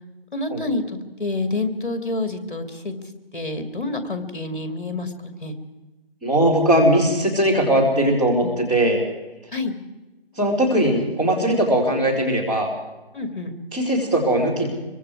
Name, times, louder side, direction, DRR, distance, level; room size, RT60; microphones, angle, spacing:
voice 1, 0.3-0.8 1.2-2.9 3.3-5.6 8.4-8.6 9.5-9.7 13.1-13.5, left 2 dB, 55° left, 8 dB, 2.6 m, -28 dB
voice 2, 6.2-9.0 10.4-12.7 13.7-14.7, right 1 dB, 10° right, -7 dB, 2.4 m, -19 dB
25.5 x 23.5 x 4.8 m, 1.1 s
figure-of-eight pair, 165°, 31 cm